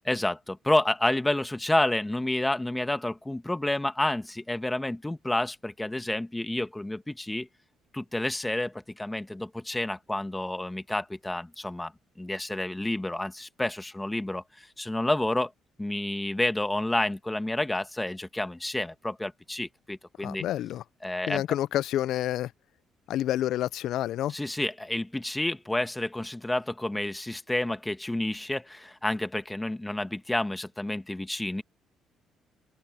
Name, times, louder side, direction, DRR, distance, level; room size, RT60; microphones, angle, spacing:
voice 1, 0.0-7.5 7.9-11.9 12.2-15.5 15.8-20.4 21.0-21.4 24.3-31.6, left 1 dB, 10° left, 1.4 m, -29 dB
voice 2, 20.2-20.8 21.3-22.5 23.1-24.3, left 13 dB, 70° left, 0.4 m, -28 dB
cardioid pair, 125°, 0 cm